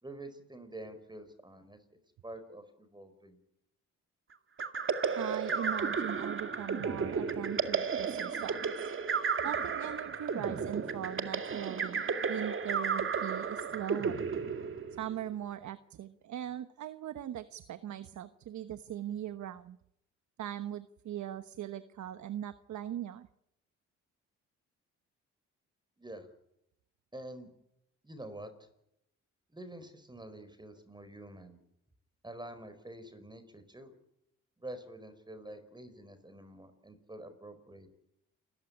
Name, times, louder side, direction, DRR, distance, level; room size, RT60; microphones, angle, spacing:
voice 1, 0.0-1.8 2.2-3.4 26.0-26.3 27.1-27.5 28.0-28.5 29.5-31.6 32.2-33.9 34.6-37.9, right 1 dB, 15° right, 11 dB, 4.8 m, -47 dB
sound 1, 4.6-15.2, right 5 dB, 45° right, 2.2 m, -33 dB
voice 2, 5.2-8.9 9.4-14.2 14.9-19.8 20.4-23.3, right 11 dB, 70° right, 12 dB, 1.2 m, -40 dB
28.0 x 14.5 x 9.9 m, 0.81 s
cardioid pair, 70°, 30 cm